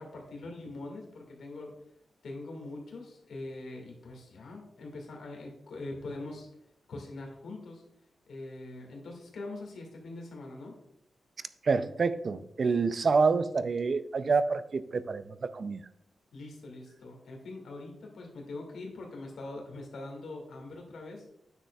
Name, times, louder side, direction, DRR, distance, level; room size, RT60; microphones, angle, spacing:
voice 1, 0.0-1.8 2.2-6.5 6.9-7.8 8.3-10.8 16.3-21.2, left 2 dB, 85° left, 1 dB, 1.9 m, -43 dB
voice 2, 11.6-15.8, right 4 dB, 55° right, 14 dB, 0.4 m, -27 dB
9.6 x 6.6 x 2.3 m, 0.75 s
cardioid pair, 90°, 0 cm